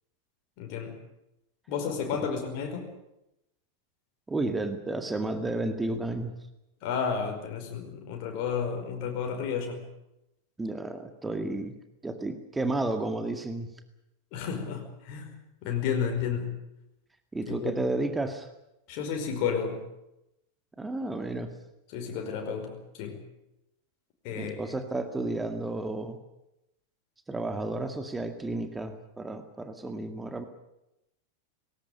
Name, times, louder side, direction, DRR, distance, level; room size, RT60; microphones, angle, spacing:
voice 1, 0.6-1.0 1.7-2.9 6.8-9.8 14.3-16.5 17.5-17.7 18.9-19.8 21.9-23.2 24.2-24.6, left 6 dB, 45° left, 3 dB, 5.1 m, -32 dB
voice 2, 4.3-6.3 10.6-11.7 12.0-13.7 17.3-18.5 20.8-21.5 24.4-26.2 27.3-30.4, right 2 dB, 10° right, 8 dB, 2.0 m, -32 dB
19.5 x 18.0 x 9.6 m, 0.88 s
figure-of-eight pair, 90°, 0 cm